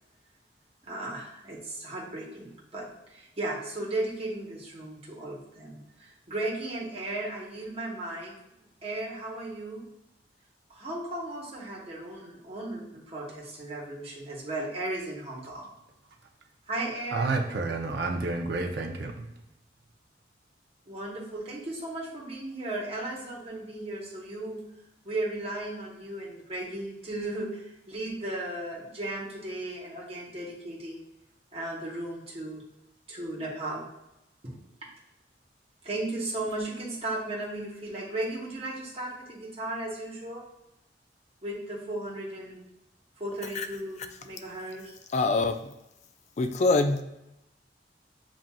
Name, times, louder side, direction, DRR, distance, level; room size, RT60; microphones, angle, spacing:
voice 1, 0.8-8.3 8.8-9.9 10.7-15.7 16.7-17.3 20.9-24.6 25.0-31.0 31.5-32.6 33.1-33.8 34.4-34.5 35.8-40.5 41.4-42.6 43.2-44.9, right 2 dB, 35° right, 1.0 m, -35 dB
voice 2, 17.1-19.3, right 3 dB, 65° right, 0.6 m, -30 dB
voice 3, 45.1-45.7 46.4-47.0, left 3 dB, 40° left, 0.4 m, -24 dB
7.2 x 2.5 x 2.3 m
head